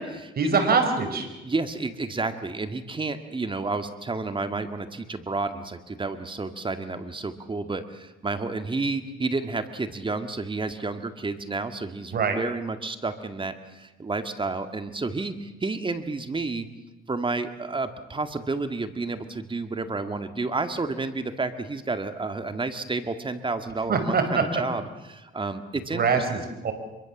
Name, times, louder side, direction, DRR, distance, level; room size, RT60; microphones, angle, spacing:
voice 1, 0.4-1.3 12.1-12.4 23.9-24.6 25.9-26.7, right 4 dB, 50° right, 6 dB, 5.2 m, -23 dB
voice 2, 1.4-16.7 17.1-26.5, right 3 dB, 25° right, 9 dB, 2.1 m, -31 dB
26.0 x 23.0 x 7.3 m, 1.1 s
cardioid pair, 90°, 20 cm